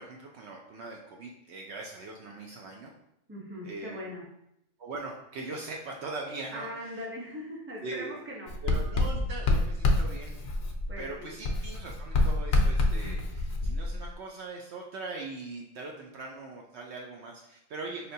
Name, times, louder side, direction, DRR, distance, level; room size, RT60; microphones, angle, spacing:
voice 1, 0.0-2.9 3.6-4.0 4.8-6.9 7.8-8.1 8.6-10.4 11.0-18.1, right 3 dB, 65° right, 0 dB, 0.8 m, -41 dB
voice 2, 3.3-4.3 6.5-8.6 10.9-11.3, equal, 10° right, -4 dB, 0.7 m, -40 dB
Writing, 8.5-11.1 11.4-14.1, left 2 dB, 60° left, 0.6 m, -27 dB
5.0 x 2.8 x 2.7 m, 0.79 s
omnidirectional pair, 1.3 m